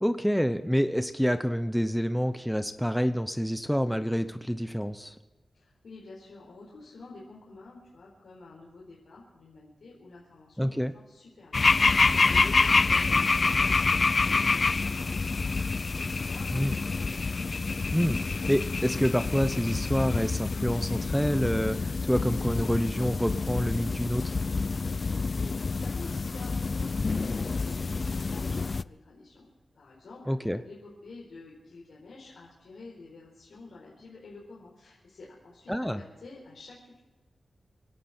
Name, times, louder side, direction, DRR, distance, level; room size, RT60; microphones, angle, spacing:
voice 1, 0.0-5.1 10.6-10.9 16.5-16.7 17.9-24.3 30.3-30.6 35.7-36.0, equal, ahead, 9 dB, 0.8 m, -27 dB
voice 2, 5.5-17.1 25.1-37.0, left 3 dB, 80° left, -4 dB, 4.4 m, -49 dB
sound 1, 11.5-28.8, left 4 dB, 45° left, 0.4 m, -27 dB
26.5 x 12.0 x 4.4 m, 1.2 s
wide cardioid pair, 105°, 0 cm